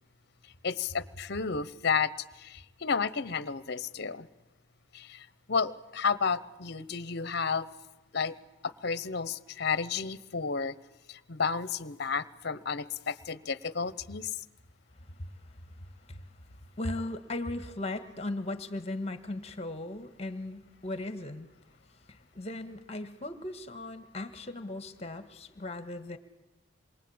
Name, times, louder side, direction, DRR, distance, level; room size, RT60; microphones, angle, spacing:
voice 1, 0.6-2.1 2.4-4.3 4.9-7.7 8.1-8.4 8.6-10.7 11.1-14.3, left 5 dB, 55° left, 16 dB, 0.9 m, -32 dB
voice 2, 15.7-21.5 22.1-26.2, left 2 dB, 30° left, 9 dB, 1.6 m, -38 dB
27.5 x 22.5 x 8.8 m, 0.99 s
head